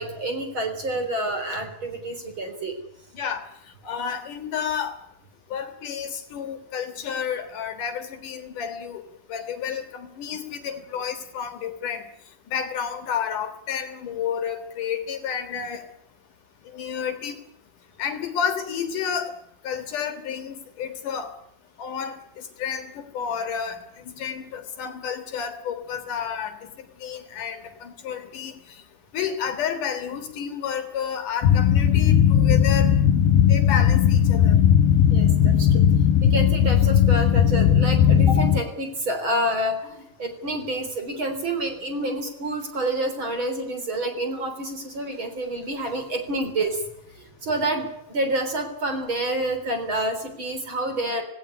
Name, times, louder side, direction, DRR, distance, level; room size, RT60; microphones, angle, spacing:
voice 1, 0.0-2.7 35.1-35.8 36.2-46.8 47.1-51.2, right 1 dB, 35° right, 6 dB, 4.1 m, -28 dB
voice 2, 3.8-5.0 5.5-9.0 9.3-12.0 12.5-15.8 16.7-17.4 18.0-19.3 19.6-21.3 21.8-23.8 24.2-26.6 27.0-28.6 29.1-32.9 33.5-34.6 38.4-38.5, left 7 dB, 65° left, 8 dB, 3.0 m, -30 dB
sound 1, 31.4-38.6, left 9 dB, 80° left, 2.8 m, -17 dB
18.0 x 17.5 x 9.9 m, 0.75 s
omnidirectional pair, 4.3 m